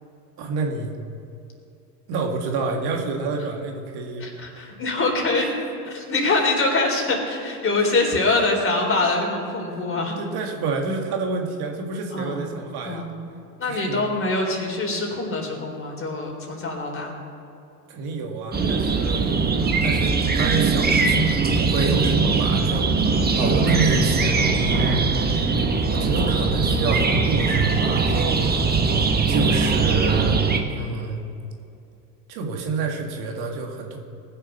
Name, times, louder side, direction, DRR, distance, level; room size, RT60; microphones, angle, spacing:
voice 1, 0.4-0.9 2.1-4.2 8.2-8.4 9.7-9.8 10.2-13.1 13.6-14.1 17.9-19.2 19.8-22.9 23.4-25.1 25.9-28.7 29.3-30.4 30.7-31.2 32.3-34.0, right 3 dB, 55° right, 2 dB, 2.0 m, -28 dB
voice 2, 4.2-5.5 5.9-10.2 12.1-12.4 12.8-13.1 13.6-17.2 19.0-19.2 19.6-19.8 23.4-23.7 28.3-28.5, left 2 dB, 30° left, 0 dB, 3.7 m, -24 dB
sound 1, 18.5-30.6, right 4 dB, 20° right, 1.3 m, -21 dB
19.5 x 6.7 x 5.9 m, 2.6 s
hypercardioid pair, 85°, 46 cm